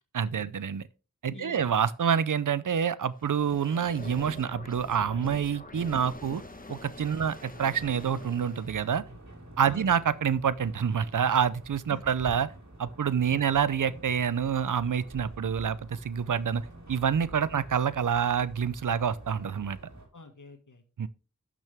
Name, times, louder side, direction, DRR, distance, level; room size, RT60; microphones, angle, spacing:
voice 1, 0.1-0.8 1.2-6.4 6.7-9.0 9.6-12.5 12.8-16.6 16.9-19.8 21.0-21.1, right 7 dB, 90° right, 0.5 m, -27 dB
voice 2, 1.3-1.8 7.2-7.3 9.7-9.9 11.9-12.0 13.3-13.4 20.1-21.1, left 4 dB, 80° left, 1.7 m, -48 dB
sound 1, 3.2-8.9, left 2 dB, 30° left, 1.1 m, -45 dB
sound 2, 7.5-20.1, right 2 dB, 65° right, 3.0 m, -48 dB
12.0 x 6.1 x 3.5 m
wide cardioid pair, 45°, 30 cm